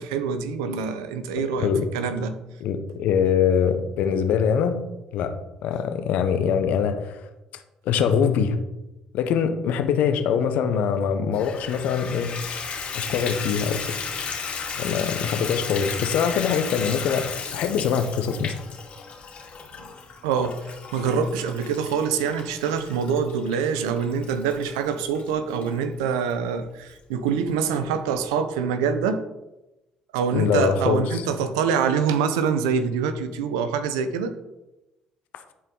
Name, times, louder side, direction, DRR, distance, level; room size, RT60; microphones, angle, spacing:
voice 1, 0.0-1.7 1.9-2.4 20.2-29.2 30.1-34.3, right 6 dB, 90° right, 10 dB, 0.7 m, -25 dB
voice 2, 1.4-1.8 2.6-4.8 5.1-5.3 5.6-8.6 9.1-12.3 12.9-13.8 14.8-18.5 30.3-31.2, left 7 dB, 70° left, 8 dB, 0.9 m, -23 dB
Water tap faucet / Bathtub (filling or washing), 11.3-25.7 26.3-26.4 26.9-27.0 27.3-27.4, left 5 dB, 55° left, 2.5 m, -34 dB
11.0 x 4.6 x 3.8 m, 0.97 s
hypercardioid pair, 60°, 3 cm